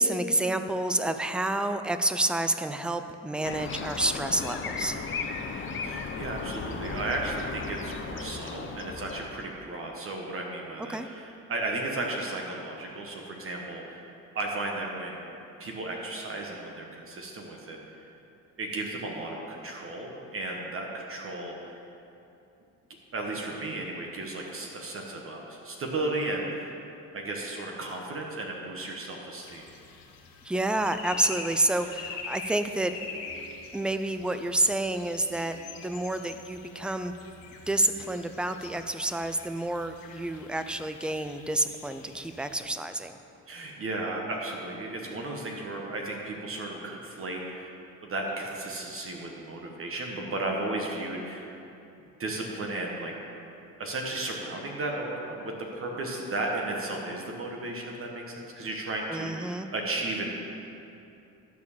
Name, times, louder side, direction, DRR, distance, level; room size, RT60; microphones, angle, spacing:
voice 1, 0.0-5.0 10.9-11.1 30.4-32.9 33.7-37.1 37.7-43.2 59.1-59.7, right 1 dB, 5° right, 9 dB, 0.3 m, -29 dB
sound 1, 3.4-9.4, left 4 dB, 35° left, 0.7 m, -36 dB
voice 2, 5.8-14.1 14.3-15.3 15.6-18.1 18.6-21.8 23.1-26.7 27.1-29.7 43.5-47.8 48.0-51.5 52.2-53.1 53.8-60.4, right 2 dB, 40° right, 0 dB, 1.3 m, -34 dB
sound 2, 29.4-42.6, left 4 dB, 85° left, 1.3 m, -44 dB
11.5 x 4.5 x 7.1 m, 2.8 s
cardioid pair, 115°, 34 cm